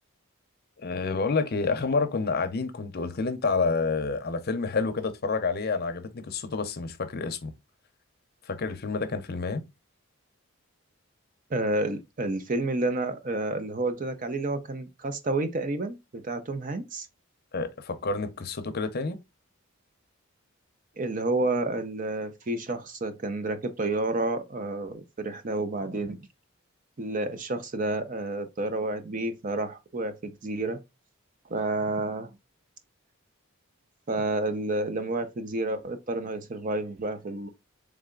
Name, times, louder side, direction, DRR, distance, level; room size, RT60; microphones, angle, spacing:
voice 1, 0.8-7.5 8.5-9.6 17.5-19.2, left 4 dB, 45° left, 0.6 m, -29 dB
voice 2, 11.5-17.1 21.0-26.2 27.0-30.8 31.5-32.3 34.1-37.5, right 2 dB, 40° right, 0.6 m, -30 dB
3.7 x 3.3 x 3.7 m
head